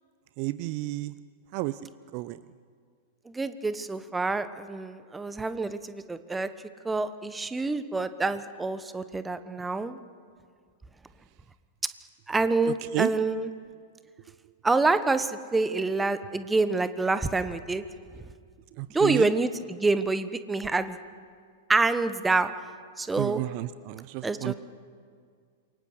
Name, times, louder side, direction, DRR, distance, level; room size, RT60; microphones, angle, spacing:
voice 1, 0.4-1.1 1.5-1.8 2.1-2.4 12.9-13.1 18.8-19.3 23.2-24.5, right 19 dB, 45° right, 16 dB, 0.6 m, -31 dB
voice 2, 3.3-6.5 6.8-10.0 12.3-13.5 14.6-17.8 18.9-21.0 21.7-22.5 23.0-23.4 24.2-24.5, right 3 dB, 10° right, 12 dB, 1.2 m, -27 dB
28.0 x 23.5 x 6.6 m, 2.1 s
figure-of-eight pair, 100°, 0 cm